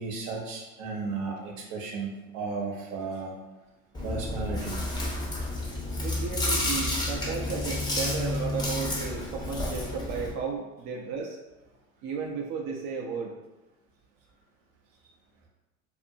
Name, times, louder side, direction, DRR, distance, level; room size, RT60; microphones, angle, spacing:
voice 1, 0.0-3.3 4.0-4.8, right 4 dB, 70° right, 0 dB, 0.8 m, -34 dB
Chewing mastication, 3.9-10.3, left 1 dB, 10° left, 0.6 m, -30 dB
voice 2, 6.0-11.4 12.0-13.4, right 5 dB, 40° right, -1 dB, 0.5 m, -34 dB
2.5 x 2.4 x 2.6 m, 1.0 s
hypercardioid pair, 75°, 40 cm